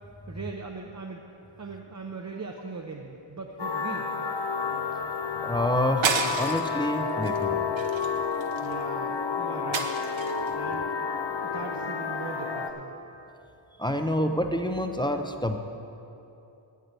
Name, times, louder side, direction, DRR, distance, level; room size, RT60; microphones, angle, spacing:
voice 1, 0.3-1.2 1.6-4.1 8.6-9.9 10.5-10.9 11.4-13.0, right 4 dB, 35° right, 1 dB, 0.7 m, -39 dB
sound 1, 3.6-12.7, left 5 dB, 60° left, 0.9 m, -30 dB
voice 2, 5.4-7.7 13.8-15.6, left 1 dB, 10° left, 5 dB, 0.6 m, -27 dB
sound 2, 6.0-6.8 7.2-7.4 7.8-8.7 9.7-10.5, right 5 dB, 70° right, 0.9 m, -30 dB
8.2 x 7.6 x 8.8 m, 2.8 s
wide cardioid pair, 90°, 48 cm